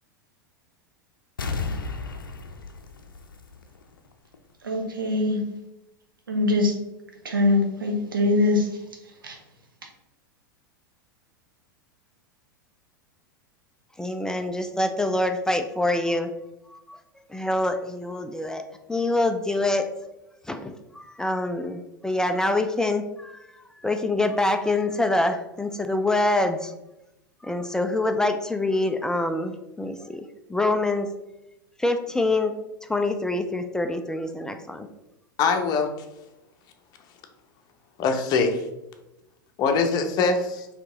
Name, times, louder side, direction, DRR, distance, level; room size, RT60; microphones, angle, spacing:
sound 1, 1.4-4.0 4.3-4.4, left 4 dB, 75° left, 0.5 m, -33 dB
voice 1, 4.6-5.4 6.3-6.7 7.2-8.7 9.2-9.4, left 2 dB, 80° right, 1 dB, 0.8 m, -22 dB
voice 2, 14.0-16.3 16.7-17.0 17.3-18.6 18.9-19.9 20.5-26.7 27.4-31.1 31.8-32.5 32.8-34.9, left 2 dB, 5° left, 6 dB, 0.3 m, -25 dB
voice 3, 35.4-35.9 38.0-38.6 39.6-40.7, left 4 dB, 35° left, 5 dB, 0.7 m, -22 dB
4.5 x 2.9 x 3.7 m, 0.94 s
figure-of-eight pair, 90°, 11 cm